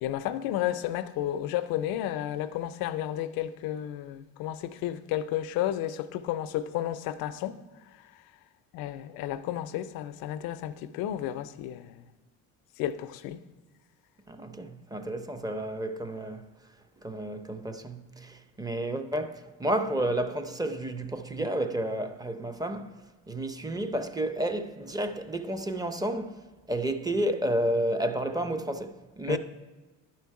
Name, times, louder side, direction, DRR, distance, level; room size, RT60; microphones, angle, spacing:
voice 1, 0.0-7.6 8.7-12.0 12.8-13.4 29.3-29.4, left 12 dB, 85° left, 0.5 m, -32 dB
voice 2, 14.3-16.4 17.0-29.4, right 1 dB, 10° right, 0.5 m, -31 dB
11.0 x 4.5 x 4.7 m
cardioid pair, 95°, 35 cm